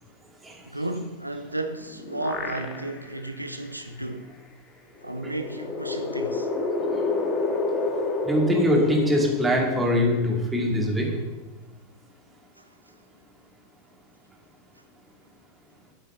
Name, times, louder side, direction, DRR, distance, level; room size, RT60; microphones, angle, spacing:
voice 1, 0.7-4.4 5.0-6.5 12.6-12.7, right 1 dB, 85° right, 0.6 m, -33 dB
sound 1, 1.7-3.2 3.6-3.7 5.0-9.8, left 3 dB, 25° left, 1.7 m, -29 dB
voice 2, 8.2-11.3, equal, 10° right, 2.8 m, -23 dB
12.5 x 7.3 x 4.1 m
figure-of-eight pair, 90°, 0 cm